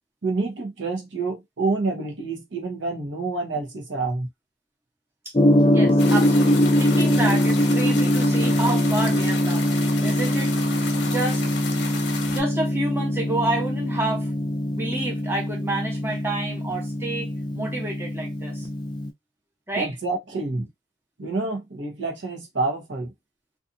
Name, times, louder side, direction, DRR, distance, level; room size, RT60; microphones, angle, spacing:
voice 1, 0.2-4.3 19.8-20.7 21.2-23.1, right 3 dB, 70° right, 0.9 m, -28 dB
Gong, 5.3-19.1, equal, 25° left, 0.4 m, -22 dB
voice 2, 5.7-10.5 11.0-11.4 12.3-14.3 14.7-18.7 19.7-19.9, right 2 dB, 10° right, 0.7 m, -29 dB
sound 1, 6.0-12.4, left 5 dB, 60° left, 0.7 m, -34 dB
2.7 x 2.4 x 2.5 m
head